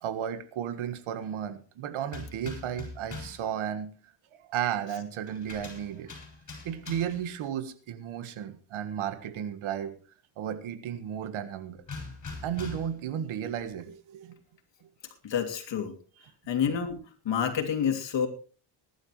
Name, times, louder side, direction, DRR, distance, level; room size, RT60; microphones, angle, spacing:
voice 1, 0.0-3.9 4.3-6.1 6.6-10.0 10.4-11.8 12.4-14.4 14.8-14.9, right 9 dB, 75° right, 12 dB, 1.6 m, -34 dB
sound 1, 2.1-3.5 5.3-7.3 11.9-13.0, left 3 dB, 35° left, 6.1 m, -42 dB
voice 2, 15.2-15.9 16.5-17.0 17.2-18.3, left 7 dB, 60° left, 6 dB, 3.0 m, -28 dB
20.0 x 11.5 x 3.1 m, 0.39 s
cardioid pair, 95°, 49 cm